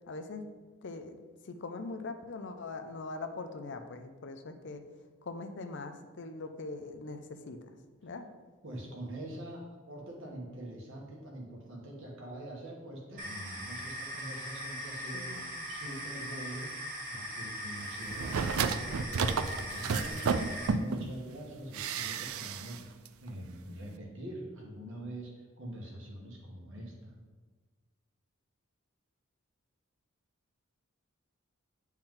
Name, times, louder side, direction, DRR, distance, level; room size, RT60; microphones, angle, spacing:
voice 1, 0.1-0.4 0.8-1.2 1.5-4.8 5.2-7.6 8.0-8.3 15.1-15.7, left 3 dB, 60° left, 8 dB, 0.6 m, -42 dB
voice 2, 8.6-9.6 9.9-16.7 17.1-27.1, right 1 dB, 65° right, -2 dB, 1.7 m, -44 dB
sound 1, 13.2-20.7, equal, 40° right, 1.6 m, -40 dB
sound 2, 18.1-21.1 21.7-22.8 23.1-23.2, right 5 dB, 85° right, 0.4 m, -32 dB
9.1 x 4.4 x 3.8 m, 1.3 s
head